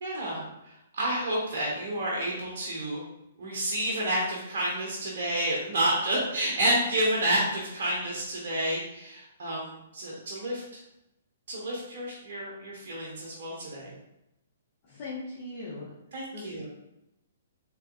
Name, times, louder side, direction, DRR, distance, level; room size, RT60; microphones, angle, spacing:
voice 1, 0.0-3.0 3.4-10.6 11.5-13.9 16.1-16.7, right 1 dB, 55° right, -4 dB, 0.8 m, -30 dB
voice 2, 14.8-15.9 16.3-16.7, left 3 dB, 35° left, -8 dB, 0.9 m, -39 dB
3.7 x 2.8 x 2.5 m, 0.88 s
figure-of-eight pair, 120°, 0 cm